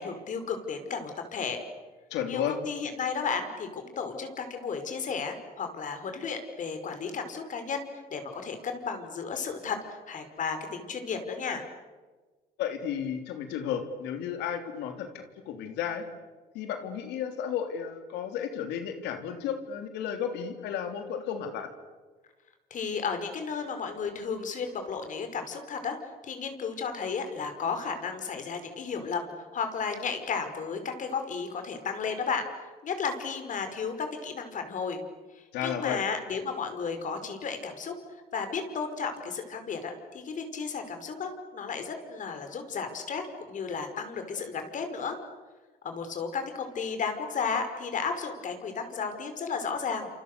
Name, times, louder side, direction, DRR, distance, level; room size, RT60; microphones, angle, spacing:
voice 1, 0.0-1.6 2.2-9.8 10.1-11.6 22.7-26.0 26.2-32.5 32.8-35.0 35.3-45.2 45.8-50.1, left 5 dB, 50° left, 6 dB, 5.3 m, -33 dB
voice 2, 2.1-2.6 12.6-16.0 16.5-21.7 35.5-36.0, left 8 dB, 90° left, 6 dB, 3.4 m, -33 dB
29.0 x 28.0 x 6.9 m, 1.3 s
cardioid pair, 110°, 17 cm